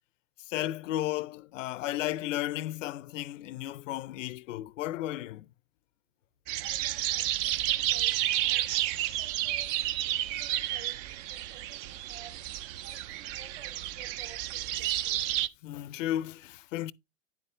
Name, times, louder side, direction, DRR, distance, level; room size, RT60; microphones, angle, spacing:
voice 1, 0.4-5.5 15.6-16.9, left 14 dB, 75° left, 0.5 m, -34 dB
sound 1, 6.5-15.5, right 13 dB, 45° right, 0.5 m, -31 dB
voice 2, 6.6-12.3 12.8-15.2, right 7 dB, 65° right, 2.8 m, -54 dB
9.6 x 7.1 x 3.2 m
hypercardioid pair, 110°, 39 cm